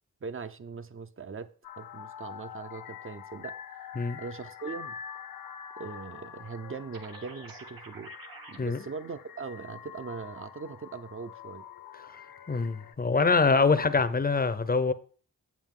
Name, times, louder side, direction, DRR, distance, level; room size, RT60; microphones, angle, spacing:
voice 1, 0.2-3.6 4.2-5.0 5.8-8.1 8.5-11.7, right 5 dB, 40° right, 0.6 m, -40 dB
sound 1, 1.6-13.0, left 8 dB, 80° left, 0.6 m, -45 dB
sound 2, 6.9-8.6, right 5 dB, 80° right, 1.0 m, -48 dB
voice 2, 12.5-14.9, left 4 dB, 25° left, 0.6 m, -24 dB
8.1 x 7.5 x 3.7 m
wide cardioid pair, 90°, 34 cm